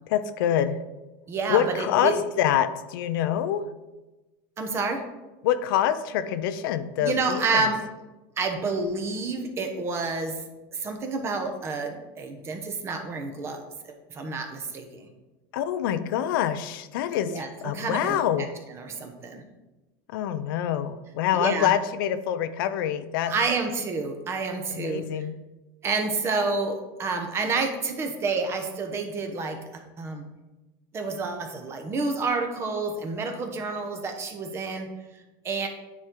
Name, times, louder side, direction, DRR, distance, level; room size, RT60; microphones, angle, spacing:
voice 1, 0.1-0.8 1.5-3.7 5.4-7.6 15.5-18.5 20.1-23.3 24.7-25.3, left 10 dB, 75° left, 11 dB, 0.5 m, -26 dB
voice 2, 1.3-2.1 4.6-5.0 7.0-7.8 8.4-10.4 10.7-15.1 17.3-18.2 18.7-19.4 21.3-21.7 23.3-25.0 25.8-29.6 30.0-30.3 30.9-34.9 35.4-35.7, right 4 dB, 20° right, 5 dB, 0.8 m, -29 dB
9.6 x 4.4 x 3.7 m, 1.1 s
supercardioid pair, 160°, 12 cm